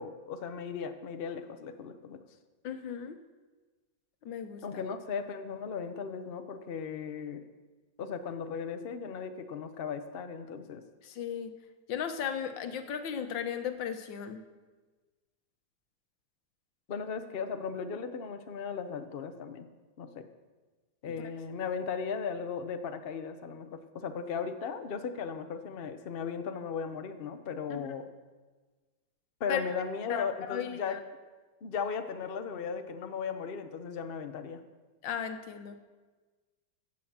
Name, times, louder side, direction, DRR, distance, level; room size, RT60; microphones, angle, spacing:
voice 1, 0.0-2.2 4.6-7.4 8.0-10.8 16.9-19.7 20.0-20.3 21.0-28.1 29.4-31.0 31.6-34.6, left 6 dB, 55° left, 8 dB, 0.6 m, -37 dB
voice 2, 2.6-3.2 4.2-4.8 11.0-11.5 11.9-14.4 27.7-27.9 29.5-29.6 30.1-31.0 35.0-35.8, left 8 dB, 80° left, 8 dB, 1.6 m, -36 dB
15.5 x 6.2 x 7.3 m, 1.3 s
omnidirectional pair, 2.0 m